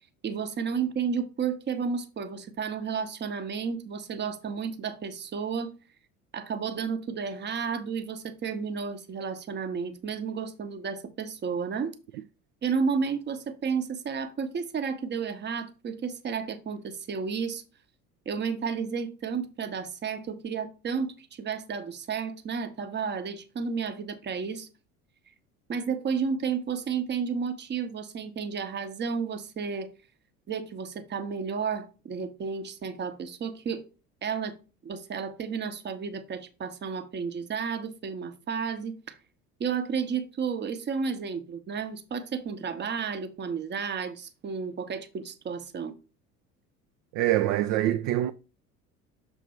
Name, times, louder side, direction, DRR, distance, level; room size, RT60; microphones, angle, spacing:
voice 1, 0.2-5.7 6.3-11.9 12.6-17.6 18.3-24.7 25.7-29.9 30.5-33.9 34.2-34.6 34.8-39.2 39.6-45.9, right 6 dB, 25° right, 0.9 m, -32 dB
voice 2, 47.1-48.3, right 14 dB, 40° right, 0.4 m, -24 dB
6.6 x 2.7 x 5.5 m
figure-of-eight pair, 65°, 44 cm